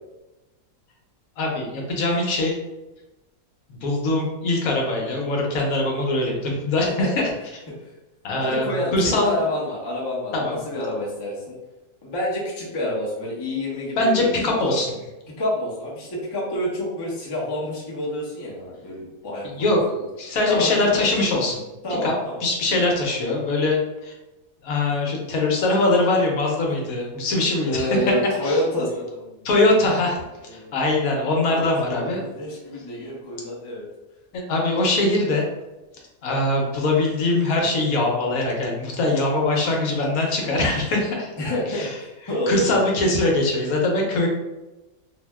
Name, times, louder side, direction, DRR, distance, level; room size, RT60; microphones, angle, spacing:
voice 1, 1.4-2.6 3.7-7.3 8.2-9.4 10.3-10.6 14.0-14.9 19.5-19.8 20.2-21.6 22.0-22.1 22.4-24.1 24.6-27.9 28.4-28.6 29.4-30.2 30.5-32.2 34.3-35.5 36.2-41.3 41.7-41.9 42.5-44.3, left 2 dB, 80° left, 0 dB, 1.1 m, -22 dB
voice 2, 8.4-11.5 12.0-14.3 14.7-14.8 15.4-19.8 20.5-21.0 21.8-22.5 26.8-26.9 27.2-27.3 27.6-29.7 30.4-30.7 31.4-33.9 41.4-42.8, left 1 dB, 25° left, -5 dB, 0.5 m, -28 dB
2.7 x 2.1 x 3.3 m, 1.0 s
omnidirectional pair, 1.5 m